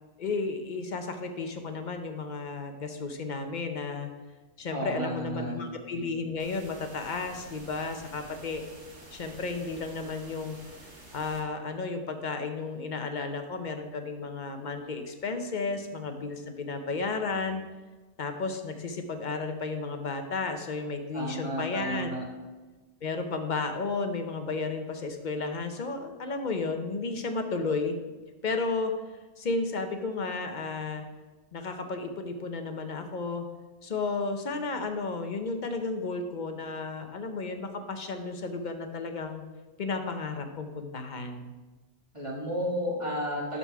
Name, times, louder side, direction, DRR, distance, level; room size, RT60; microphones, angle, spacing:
voice 1, 0.2-4.1 4.6-8.6 9.1-10.6 11.1-17.6 18.2-22.1 23.0-27.9 28.4-28.9 29.4-31.1 31.5-33.5 33.8-39.4 39.8-41.5, left 4 dB, 45° left, 6 dB, 0.8 m, -33 dB
voice 2, 4.7-5.7 21.1-22.3 42.1-43.6, equal, 25° right, -4 dB, 1.6 m, -32 dB
sound 1, 6.4-11.4, right 1 dB, 65° right, 2.0 m, -49 dB
12.0 x 4.1 x 4.7 m, 1.3 s
omnidirectional pair, 1.3 m